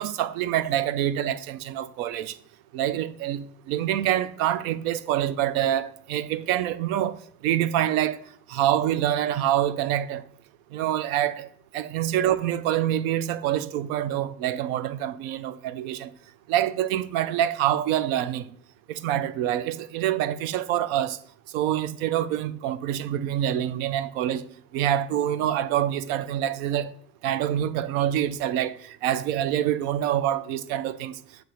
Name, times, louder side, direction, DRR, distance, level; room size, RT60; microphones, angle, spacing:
voice 1, 0.0-2.4 2.7-7.2 7.4-8.2 8.5-10.2 10.7-11.5 11.7-16.1 16.5-18.4 18.9-21.2 21.5-26.9 27.2-31.2, right 11 dB, 65° right, 0.5 m, -26 dB
6.4 x 3.1 x 4.8 m
figure-of-eight pair, 55°, 46 cm